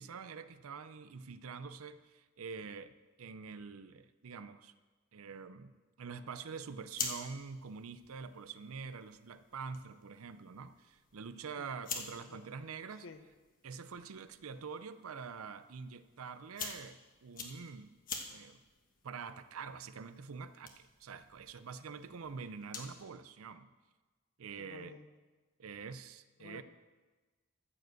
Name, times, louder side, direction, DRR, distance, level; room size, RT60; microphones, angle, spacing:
voice 1, 0.0-4.7 5.1-13.1 13.6-17.9 18.3-18.6 19.0-23.7 24.4-25.0 25.6-26.6, right 5 dB, 80° right, 13 dB, 0.6 m, -46 dB
sound 1, 6.6-23.1, left 5 dB, 40° left, 1.3 m, -48 dB
voice 2, 24.6-25.1 26.4-26.6, left 4 dB, 65° left, 9 dB, 0.9 m, -52 dB
14.0 x 5.1 x 7.8 m, 1.3 s
head